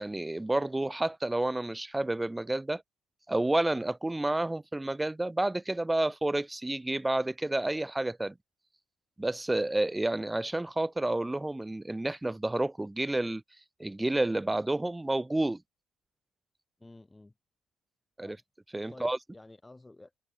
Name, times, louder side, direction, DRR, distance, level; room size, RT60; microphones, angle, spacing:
voice 1, 0.0-2.8 3.3-8.3 9.2-13.4 13.8-15.6 18.2-18.4 18.7-19.2, right 2 dB, 5° right, 0.5 m, -30 dB
voice 2, 16.8-17.3 18.2-18.4 18.9-20.2, left 2 dB, 10° left, 7.5 m, -52 dB
cardioid pair, 170°, 0 cm